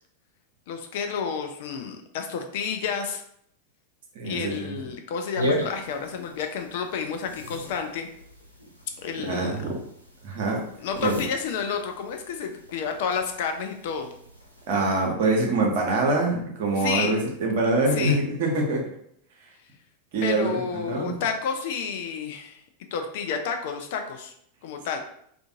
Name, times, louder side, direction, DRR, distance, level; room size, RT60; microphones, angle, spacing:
voice 1, 0.7-3.2 4.2-8.1 9.0-9.6 10.8-14.1 16.8-17.1 18.0-18.2 20.2-22.6 22.9-24.3 24.6-25.0, left 6 dB, 50° left, 5 dB, 0.3 m, -30 dB
voice 2, 4.1-4.8 9.2-9.8 10.2-10.6 11.0-11.2 14.7-18.8 20.1-20.6 20.9-21.2, right 2 dB, 50° right, 0 dB, 0.7 m, -24 dB
sound 1, 5.3-14.9, equal, 90° right, 0.5 m, -37 dB
2.4 x 2.4 x 2.7 m, 0.69 s
figure-of-eight pair, 90°, 0 cm